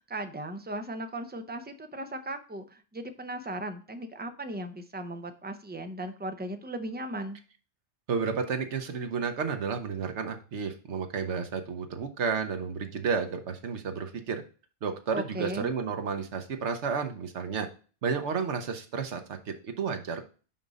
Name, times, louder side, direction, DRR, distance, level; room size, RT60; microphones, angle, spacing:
voice 1, 0.0-7.4 15.1-15.7, right 1 dB, 10° right, 7 dB, 0.4 m, -37 dB
voice 2, 8.1-14.4 14.8-17.7 18.0-20.2, right 5 dB, 75° right, 6 dB, 1.3 m, -31 dB
5.9 x 5.1 x 4.0 m, 0.37 s
omnidirectional pair, 1.2 m